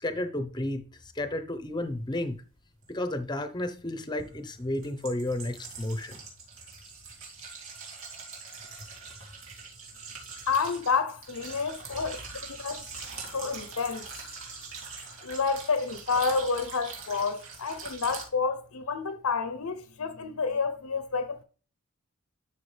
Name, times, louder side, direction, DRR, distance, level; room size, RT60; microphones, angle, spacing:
voice 1, 0.0-2.4 2.9-6.2, left 1 dB, 20° left, 0.8 m, -32 dB
sound 1, 2.8-2.9 4.2-18.2, right 4 dB, 65° right, 2.6 m, -43 dB
voice 2, 10.5-12.2 12.5-12.9 13.3-14.1 15.2-21.4, left 5 dB, 75° left, 0.7 m, -29 dB
11.5 x 5.8 x 3.3 m
head